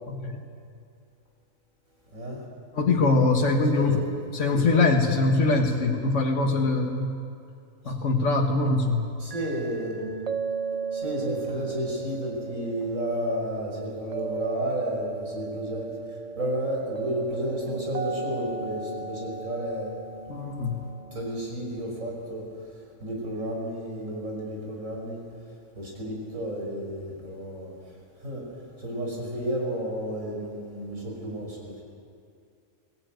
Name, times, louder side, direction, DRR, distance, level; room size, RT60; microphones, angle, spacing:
voice 1, 2.1-2.4 3.7-4.0 4.5-4.9 9.2-10.1 10.9-15.9 16.4-19.9 20.6-20.7 21.1-22.5 23.0-25.2 25.8-27.7 28.2-28.5 28.8-31.8, equal, 85° right, -2 dB, 5.8 m, -32 dB
voice 2, 2.7-4.0 4.3-7.2 7.8-9.1 20.3-20.8, left 3 dB, 65° left, 1 dB, 1.9 m, -23 dB
sound 1, 9.3-21.4, right 5 dB, 50° right, 0.4 m, -36 dB
22.0 x 17.0 x 9.2 m, 2.4 s
omnidirectional pair, 1.4 m